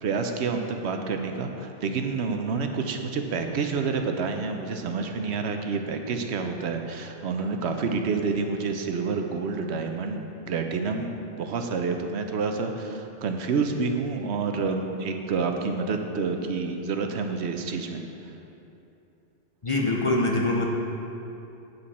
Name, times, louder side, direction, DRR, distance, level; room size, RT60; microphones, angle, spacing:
voice 1, 0.0-10.2 10.5-18.0, right 4 dB, 80° right, 5 dB, 0.9 m, -28 dB
voice 2, 19.6-20.7, left 2 dB, 35° left, -2 dB, 0.7 m, -24 dB
8.0 x 7.8 x 4.2 m, 2.9 s
omnidirectional pair, 1.1 m